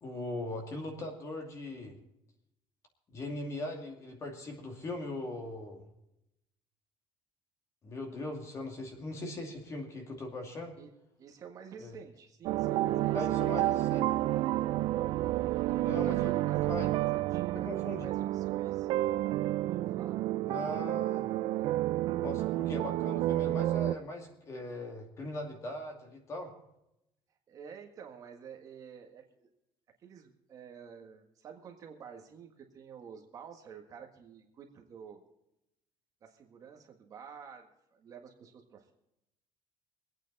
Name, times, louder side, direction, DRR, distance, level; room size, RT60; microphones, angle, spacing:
voice 1, 0.0-2.0 3.1-5.9 7.8-10.7 11.8-12.0 13.1-14.0 15.8-16.9 17.6-18.1 20.5-21.3 22.2-26.5, left 1 dB, 30° left, 3 dB, 2.5 m, -40 dB
voice 2, 11.2-13.7 15.5-18.9 19.7-20.2 27.5-29.5 30.0-35.2 36.2-38.9, right 7 dB, 35° right, 3 dB, 1.7 m, -50 dB
sound 1, 12.4-23.9, right 15 dB, 55° right, 0.4 m, -30 dB
24.0 x 9.0 x 4.1 m, 0.84 s
cardioid pair, 180°, 10 cm